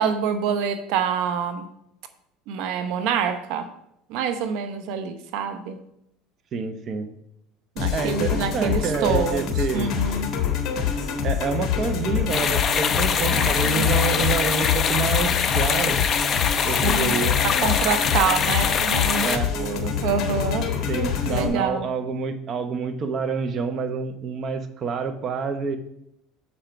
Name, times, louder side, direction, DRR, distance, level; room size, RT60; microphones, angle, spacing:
voice 1, 0.0-1.7 2.5-3.7 4.1-5.8 7.8-10.3 13.3-13.9 16.6-17.1 17.4-20.7 21.3-21.9, right 6 dB, 70° right, 10 dB, 0.8 m, -26 dB
voice 2, 6.5-7.1 7.9-9.9 11.2-16.0 16.6-17.4 19.2-19.5 20.9-25.8, right 5 dB, 40° right, 8 dB, 0.9 m, -27 dB
sound 1, 7.8-21.5, left 8 dB, 50° left, 1.4 m, -26 dB
sound 2, 12.3-19.4, left 7 dB, 35° left, 0.7 m, -23 dB
7.2 x 5.2 x 4.5 m, 0.78 s
supercardioid pair, 105°, 0 cm